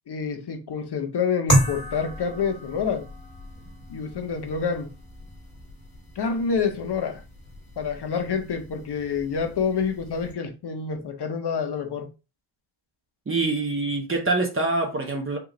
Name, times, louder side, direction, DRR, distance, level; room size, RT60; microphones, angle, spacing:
voice 1, 0.1-3.0 3.9-4.9 6.2-7.2 7.8-12.1, left 6 dB, 55° left, 0.7 m, -27 dB
sound 1, 1.5-10.3, equal, 20° left, 1.5 m, -31 dB
voice 2, 13.3-15.4, right 3 dB, 25° right, 0.6 m, -25 dB
3.7 x 2.4 x 2.9 m
wide cardioid pair, 155°, 50 cm